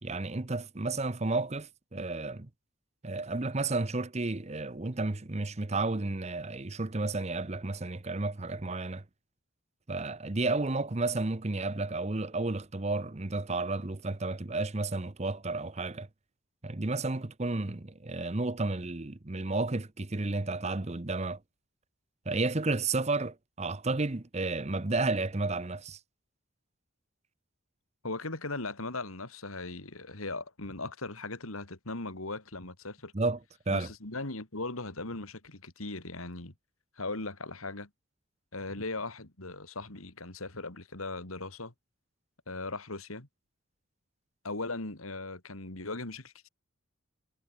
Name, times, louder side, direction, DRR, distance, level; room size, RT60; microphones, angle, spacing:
voice 1, 0.0-2.5 3.0-9.0 9.9-16.1 16.6-21.4 22.3-26.0 33.1-33.4 33.7-33.9, right 3 dB, 30° right, 0.8 m, -32 dB
voice 2, 28.0-33.1 33.7-36.5 37.0-37.9 38.5-41.7 42.5-43.3 44.4-46.5, left 2 dB, 90° left, 3.4 m, -38 dB
head